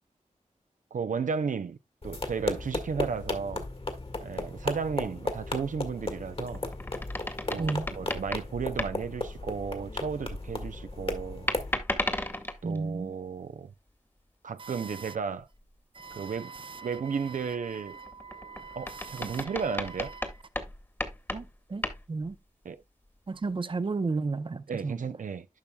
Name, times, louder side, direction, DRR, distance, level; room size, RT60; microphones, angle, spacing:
voice 1, 0.9-1.8 2.0-3.7 4.2-6.6 7.5-11.5 12.6-13.7 14.4-15.5 16.1-16.5 16.8-18.0 18.8-20.1 22.6-22.8 24.7-25.5, right 6 dB, 90° right, 0.5 m, -34 dB
sound 1, 2.0-11.7, left 2 dB, 45° left, 1.5 m, -35 dB
sound 2, 6.2-9.1 11.5-12.8 15.4-15.7 16.1-16.2 17.7-22.3, left 1 dB, 15° left, 1.3 m, -35 dB
voice 2, 12.6-13.1 14.6-14.7 16.0-16.4 16.6-16.8 18.0-19.4 21.3-21.4 21.7-21.8 22.1-22.3 23.3-24.9, right 3 dB, 40° right, 0.6 m, -33 dB
11.5 x 5.4 x 2.2 m
wide cardioid pair, 65°, 13 cm